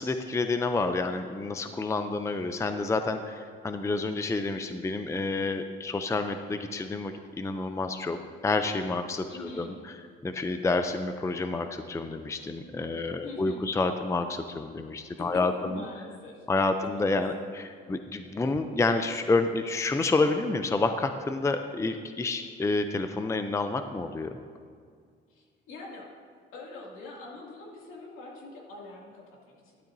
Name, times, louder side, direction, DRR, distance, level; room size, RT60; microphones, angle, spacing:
voice 1, 0.0-8.2 8.4-10.0 10.2-15.8 16.5-24.3, left 3 dB, 15° left, 8 dB, 0.5 m, -29 dB
voice 2, 9.3-9.7 13.2-13.6 15.2-15.3 15.6-16.5 25.3-26.1 26.5-29.8, left 2 dB, 75° left, -3 dB, 2.5 m, -44 dB
12.0 x 11.5 x 2.7 m, 2.1 s
cardioid pair, 85°, 21 cm